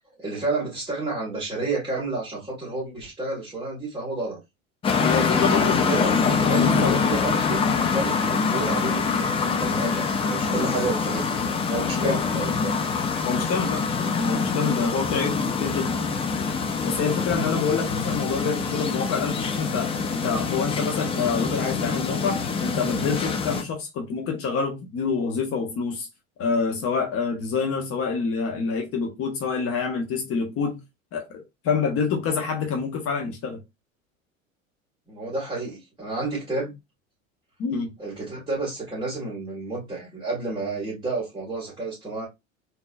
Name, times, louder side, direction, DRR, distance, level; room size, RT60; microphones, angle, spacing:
voice 1, 0.2-4.4 5.5-6.1 6.4-9.1 9.4-11.4 11.7-12.8 35.1-36.7 38.0-42.3, right 3 dB, 10° right, 2.0 m, -30 dB
sound 1, 4.8-23.6, left 5 dB, 15° left, 0.4 m, -25 dB
voice 2, 5.0-7.0 12.0-12.2 13.2-16.2 16.8-26.1 26.4-30.8 31.1-31.3 31.6-33.6 37.6-37.9, left 5 dB, 35° left, 1.1 m, -27 dB
3.8 x 2.8 x 2.5 m
figure-of-eight pair, 75°, 40 cm